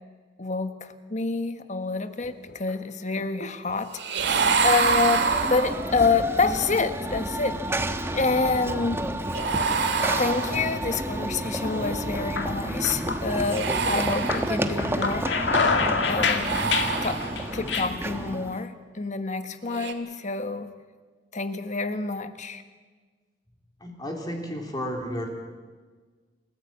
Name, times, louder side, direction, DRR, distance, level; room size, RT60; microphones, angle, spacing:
voice 1, 0.4-4.0 4.6-7.6 8.1-9.0 10.2-15.3 16.1-16.5 17.0-17.2 17.5-20.7 21.3-22.6, left 4 dB, 40° left, 9 dB, 1.4 m, -27 dB
sound 1, 2.0-2.7 3.2-3.8 4.2-4.8 5.1-5.2 6.1-7.2 7.5-8.6 9.0-9.1 10.0-10.5 10.9-11.1 11.4-13.8 14.1-17.9, left 4 dB, 70° left, 2.3 m, -29 dB
sound 2, 3.9-6.1 9.3-11.0 13.4-14.9 16.3-17.6 19.7-19.9, right 5 dB, 70° right, 2.0 m, -27 dB
Run / Train, 4.2-18.6, right 1 dB, 15° right, 1.2 m, -31 dB
voice 2, 23.8-25.3, equal, 20° left, 1 dB, 3.3 m, -32 dB
28.5 x 15.0 x 8.6 m, 1.5 s
head